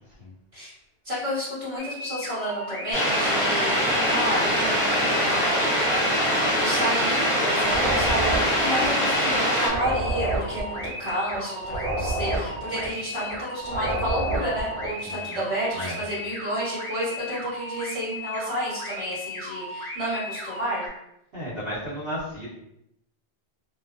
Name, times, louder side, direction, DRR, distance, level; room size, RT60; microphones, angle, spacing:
voice 1, 1.0-5.7 6.6-20.9, equal, 30° right, -10 dB, 1.3 m, -31 dB
sound 1, 1.8-20.9, left 1 dB, 40° left, 0.5 m, -36 dB
sound 2, 2.9-9.7, equal, 5° left, 0.8 m, -23 dB
sound 3, 7.6-15.0, right 2 dB, 85° right, 0.9 m, -29 dB
voice 2, 15.0-15.4 15.7-16.0 21.3-22.5, equal, 60° right, -12 dB, 1.2 m, -33 dB
2.5 x 2.2 x 2.4 m, 0.80 s
omnidirectional pair, 1.1 m